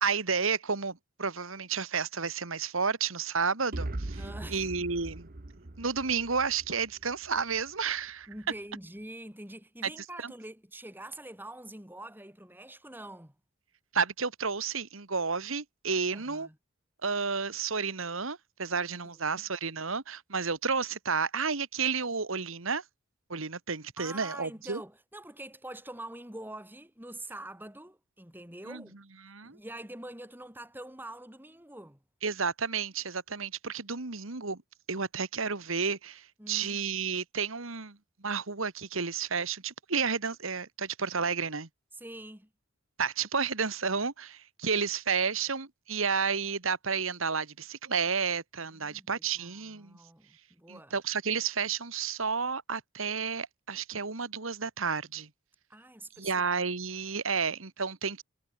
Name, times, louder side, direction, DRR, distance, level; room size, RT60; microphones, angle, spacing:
voice 1, 0.0-4.2 4.5-5.3 5.8-8.3 9.8-9.9 10.2-10.3 13.9-16.5 17.0-22.8 23.3-24.8 28.7-28.8 29.2-29.6 32.2-34.6 34.9-41.7 43.0-50.0 50.7-55.3 56.2-58.2, right 5 dB, 75° right, 1.8 m, -31 dB
sound 1, 3.7-7.6, right 1 dB, 45° right, 1.1 m, -40 dB
voice 2, 4.2-4.7 8.3-13.3 16.1-16.6 19.0-19.4 24.0-29.0 29.4-32.0 36.4-36.8 41.9-42.5 48.7-50.9 55.7-56.5, right 1 dB, 10° right, 5.7 m, -45 dB
head